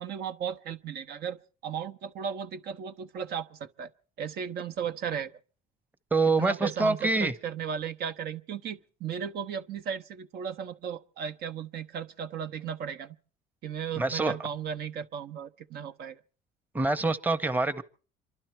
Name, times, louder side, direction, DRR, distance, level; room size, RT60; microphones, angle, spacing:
voice 1, 0.0-3.9 4.2-5.3 6.4-13.2 13.6-16.2, right 8 dB, 60° right, 1.0 m, -35 dB
voice 2, 6.1-7.3 14.0-14.3 16.7-17.8, right 3 dB, 10° right, 0.9 m, -25 dB
27.5 x 12.0 x 4.5 m
supercardioid pair, 95°, 18 cm